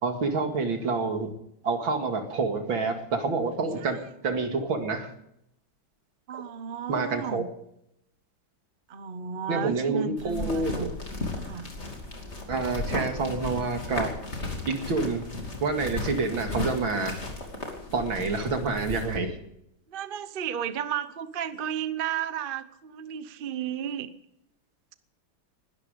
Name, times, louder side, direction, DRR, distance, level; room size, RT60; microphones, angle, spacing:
voice 1, 0.0-1.3 1.6-4.0 4.2-5.1 6.3-6.4 6.9-7.4 9.5-10.9 12.5-14.1 14.7-15.3 15.6-17.2 17.9-19.3, right 3 dB, 75° right, 5 dB, 2.9 m, -28 dB
voice 2, 6.3-7.5 8.9-11.0 11.4-11.7 19.9-24.1, right 8 dB, 45° right, 12 dB, 0.7 m, -33 dB
sound 1, 10.2-19.2, left 2 dB, 35° left, 3.0 m, -35 dB
20.5 x 12.5 x 5.2 m, 0.77 s
omnidirectional pair, 2.2 m